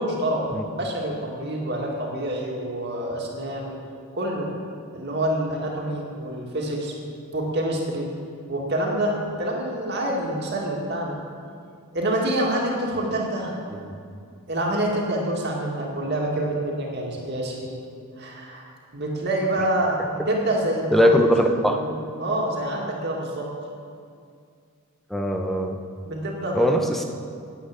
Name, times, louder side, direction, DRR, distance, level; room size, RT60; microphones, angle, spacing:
voice 1, 0.0-0.4 0.8-3.8 4.1-4.5 4.9-6.9 7.3-8.1 8.5-11.2 11.9-13.6 14.5-17.7 18.2-21.1 21.4-23.5 26.0-26.7, right 1 dB, 50° right, -2 dB, 2.1 m, -27 dB
voice 2, 20.9-21.8 25.1-25.8 26.5-27.0, equal, ahead, 3 dB, 0.8 m, -20 dB
10.5 x 7.8 x 9.0 m, 2.3 s
head